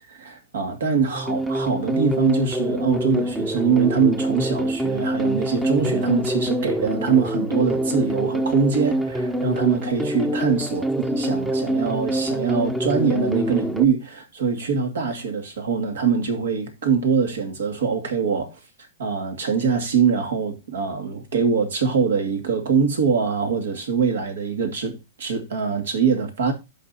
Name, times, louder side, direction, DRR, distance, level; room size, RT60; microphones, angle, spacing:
voice 1, 0.1-18.6 19.0-26.5, right 5 dB, 85° right, 2.4 m, -23 dB
sound 1, 1.1-13.9, right 1 dB, 5° right, 0.6 m, -25 dB
14.5 x 5.3 x 2.8 m
hypercardioid pair, 150°, 0 cm